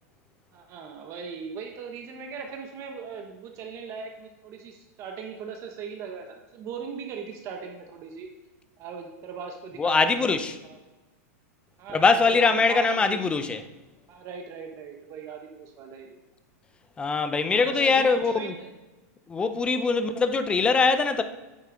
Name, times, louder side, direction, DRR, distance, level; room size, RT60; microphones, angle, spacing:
voice 1, 0.5-8.3 8.8-10.8 11.8-13.2 14.1-16.2 17.5-18.7, right 6 dB, 35° right, 0.9 m, -39 dB
voice 2, 9.8-10.5 11.9-13.6 17.0-18.5 19.3-21.2, left 4 dB, 10° left, 0.5 m, -22 dB
9.2 x 6.6 x 3.8 m
supercardioid pair, 150°, 9 cm